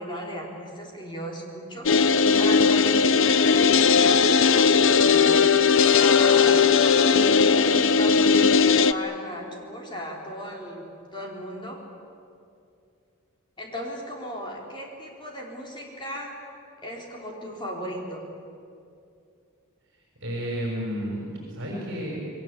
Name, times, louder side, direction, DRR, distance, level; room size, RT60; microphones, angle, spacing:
voice 1, 0.0-2.0 2.4-5.6 6.0-11.8 13.6-16.3 16.8-18.2, equal, 20° left, -1 dB, 4.3 m, -36 dB
sound 1, 1.9-8.9, left 5 dB, 60° left, 0.7 m, -18 dB
voice 2, 20.2-22.2, equal, 55° right, -2 dB, 6.2 m, -31 dB
29.0 x 22.0 x 8.5 m, 2.5 s
head